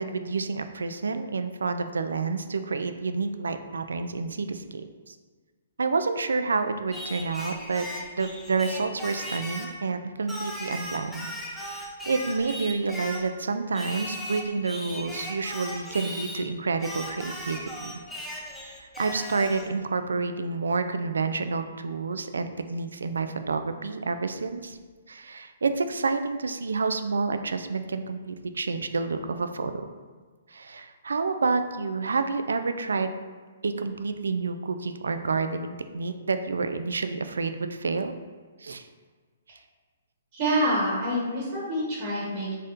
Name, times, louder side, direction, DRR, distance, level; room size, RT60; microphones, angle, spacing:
voice 1, 0.0-5.2 5.8-7.9 8.2-17.9 18.6-24.8 25.1-29.9 30.5-33.1 33.6-38.2 38.6-38.9, right 4 dB, 80° right, 9 dB, 0.3 m, -29 dB
Singing, 6.9-9.8 10.3-13.3 13.7-16.5 16.8-19.7, equal, 5° left, 0.6 m, -37 dB
voice 2, 40.3-42.5, equal, 45° right, -5 dB, 1.2 m, -26 dB
4.1 x 3.6 x 2.6 m, 1.4 s
hypercardioid pair, 130°, 0 cm